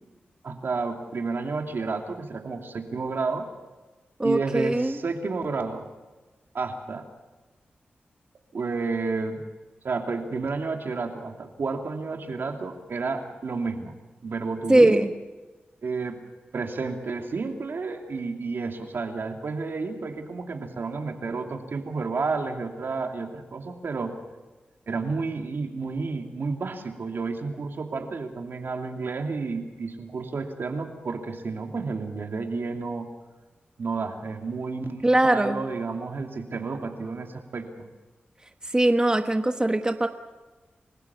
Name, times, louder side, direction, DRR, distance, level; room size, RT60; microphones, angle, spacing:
voice 1, 0.4-3.5 4.2-5.9 6.5-7.0 8.5-9.4 9.8-13.9 14.2-15.0 15.8-16.2 16.5-24.1 24.9-33.1 33.8-37.9, right 4 dB, 70° right, 4 dB, 2.7 m, -31 dB
voice 2, 4.2-4.9 14.7-15.1 35.0-35.6 38.7-40.1, right 1 dB, 20° right, 7 dB, 1.3 m, -21 dB
29.0 x 15.5 x 7.1 m, 1.2 s
cardioid pair, 55°, 4 cm